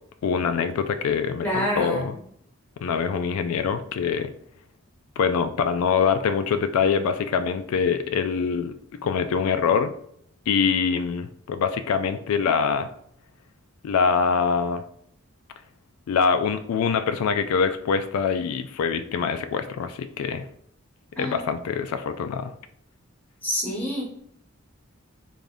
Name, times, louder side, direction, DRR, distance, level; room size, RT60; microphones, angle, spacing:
voice 1, 0.2-2.1 2.8-4.3 5.2-8.7 9.0-9.9 10.5-12.9 13.8-14.8 16.1-20.5 21.2-22.5, left 6 dB, 85° left, 11 dB, 0.3 m, -24 dB
voice 2, 1.4-2.2 21.2-21.4 23.4-24.0, equal, 5° left, -3 dB, 0.9 m, -27 dB
3.4 x 2.6 x 3.6 m, 0.66 s
head